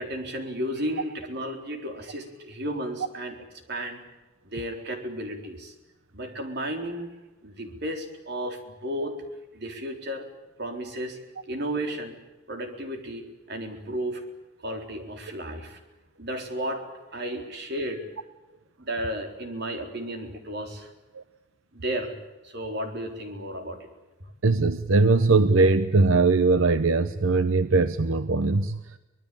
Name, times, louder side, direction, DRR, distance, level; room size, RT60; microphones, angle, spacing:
voice 1, 0.0-3.4 3.7-4.0 4.4-5.7 6.1-7.1 7.4-9.2 9.5-10.2 10.6-11.2 11.5-12.2 12.5-14.2 14.6-15.8 16.2-16.9 17.1-18.1 18.8-20.9 21.7-22.2 22.4-23.9, right 1 dB, 55° right, 4.1 m, -33 dB
voice 2, 24.4-28.9, right 3 dB, 85° right, 0.8 m, -21 dB
25.0 x 20.0 x 8.7 m
head